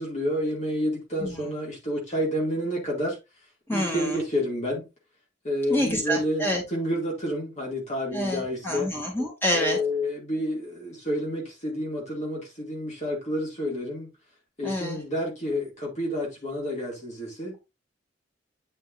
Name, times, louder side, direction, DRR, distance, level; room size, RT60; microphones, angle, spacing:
voice 1, 0.0-3.2 3.7-4.9 5.4-8.9 9.5-14.1 14.6-17.6, equal, 40° left, 2.4 m, -29 dB
voice 2, 3.7-4.2 5.7-6.6 8.1-9.8 14.6-15.0, equal, 15° left, 2.9 m, -27 dB
9.5 x 5.2 x 2.6 m
head